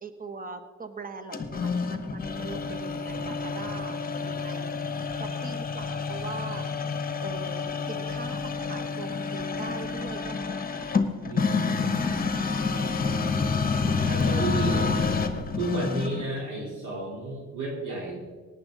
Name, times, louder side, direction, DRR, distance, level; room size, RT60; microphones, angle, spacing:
voice 1, 0.0-6.7 7.2-11.0 13.0-13.6 13.9-14.2, right 4 dB, 30° right, 9 dB, 1.3 m, -42 dB
sound 1, 1.3-16.3, left 4 dB, 30° left, 1.1 m, -28 dB
voice 2, 11.2-12.1 14.1-15.1 15.6-18.2, right 2 dB, 80° right, -4 dB, 3.9 m, -32 dB
17.0 x 9.6 x 3.9 m, 1.5 s
cardioid pair, 90°, 30 cm